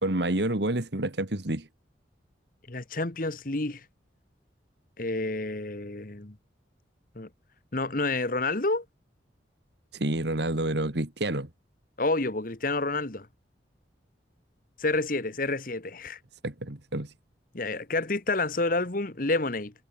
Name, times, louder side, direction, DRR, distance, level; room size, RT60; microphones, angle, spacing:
voice 1, 0.0-1.7 9.9-11.5 16.4-17.1, right 1 dB, 65° right, 2.1 m, -28 dB
voice 2, 2.7-3.8 5.0-6.3 7.1-7.3 7.7-8.8 12.0-13.3 14.8-16.2 17.5-19.7, left 2 dB, 45° left, 1.5 m, -29 dB
head